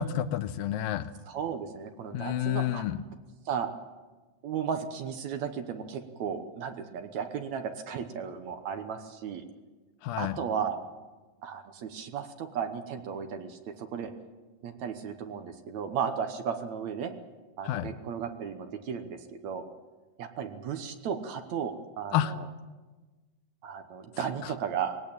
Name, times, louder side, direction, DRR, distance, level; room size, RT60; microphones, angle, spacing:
voice 1, 0.0-1.1 2.1-3.0 10.0-10.4 17.7-17.9 22.1-22.3 24.4-24.5, left 11 dB, 85° left, 12 dB, 2.6 m, -29 dB
voice 2, 1.3-2.8 3.5-3.7 4.4-9.5 10.2-10.8 11.4-14.1 14.6-17.1 17.6-19.6 20.2-22.4 23.6-25.0, right 7 dB, 65° right, 8 dB, 2.1 m, -35 dB
20.5 x 17.5 x 8.6 m, 1.3 s
omnidirectional pair, 4.0 m